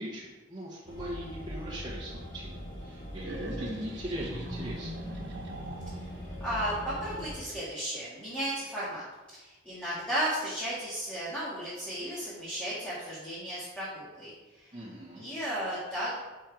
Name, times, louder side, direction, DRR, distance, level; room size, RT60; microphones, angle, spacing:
voice 1, 0.0-4.9 14.7-15.2, equal, 20° right, -5 dB, 1.0 m, -40 dB
sound 1, 0.9-7.3, equal, 30° left, 2.1 m, -41 dB
sound 2, 3.2-6.3, right 1 dB, 60° right, 1.1 m, -40 dB
voice 2, 6.4-9.0 9.3-14.3 14.6-14.7 15.2-16.2, equal, 5° left, -10 dB, 1.9 m, -34 dB
6.0 x 5.0 x 5.1 m, 1.1 s
head